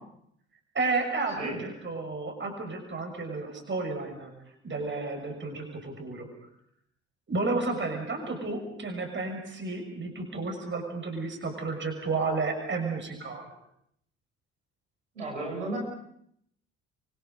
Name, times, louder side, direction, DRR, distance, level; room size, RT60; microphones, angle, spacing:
voice 1, 0.7-4.3 4.6-6.3 7.3-13.5, right 3 dB, 30° right, 4 dB, 6.5 m, -32 dB
voice 2, 15.1-15.8, right 2 dB, 80° right, -1 dB, 6.4 m, -33 dB
29.0 x 24.5 x 5.4 m, 0.70 s
figure-of-eight pair, 50°, 36 cm